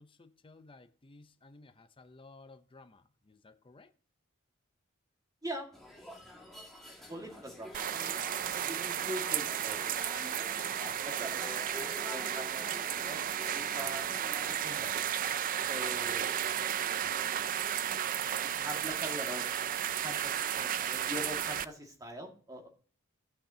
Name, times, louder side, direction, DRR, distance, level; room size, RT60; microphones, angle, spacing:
voice 1, 0.0-3.9, left 3 dB, 25° left, 0.6 m, -56 dB
sound 1, 5.7-14.5, left 1 dB, ahead, 2.0 m, -48 dB
voice 2, 7.1-13.2 13.5-14.1 14.4-15.0 15.7-16.5 18.4-22.7, equal, 15° right, 1.9 m, -44 dB
sound 2, 7.7-21.6, right 10 dB, 40° right, 0.4 m, -33 dB
17.5 x 5.8 x 2.8 m
head